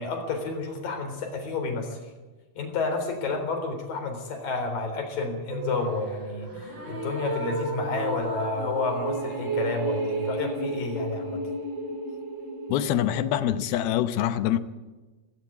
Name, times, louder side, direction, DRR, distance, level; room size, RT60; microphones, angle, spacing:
voice 1, 0.0-2.1 2.6-11.4, left 3 dB, 60° left, 5.5 m, -30 dB
sound 1, 5.5-13.7, right 2 dB, 30° right, 4.9 m, -32 dB
voice 2, 12.7-14.6, left 11 dB, 80° left, 2.7 m, -25 dB
17.0 x 16.0 x 9.6 m
omnidirectional pair, 4.5 m